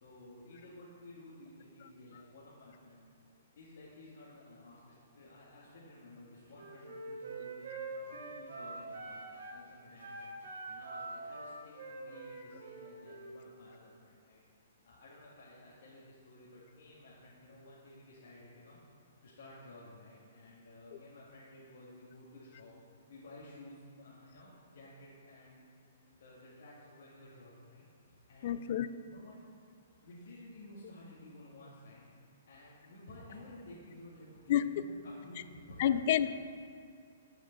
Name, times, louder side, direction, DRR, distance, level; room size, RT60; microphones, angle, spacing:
voice 1, 0.0-3.0 3.6-7.7 8.1-10.3 10.6-14.4 14.8-18.8 19.2-22.7 23.1-25.6 26.0-28.7 29.0-29.4 30.0-32.0 32.4-36.3, left 1 dB, 70° left, -7 dB, 1.8 m, -54 dB
Wind instrument woodwind instrument, 6.5-9.6 10.0-13.4, right 3 dB, 70° right, 1.8 m, -45 dB
voice 2, 28.4-28.9 34.5-34.8 35.8-36.3, left 10 dB, 50° left, 13 dB, 0.4 m, -29 dB
9.6 x 5.0 x 5.7 m, 2.3 s
hypercardioid pair, 155°, 0 cm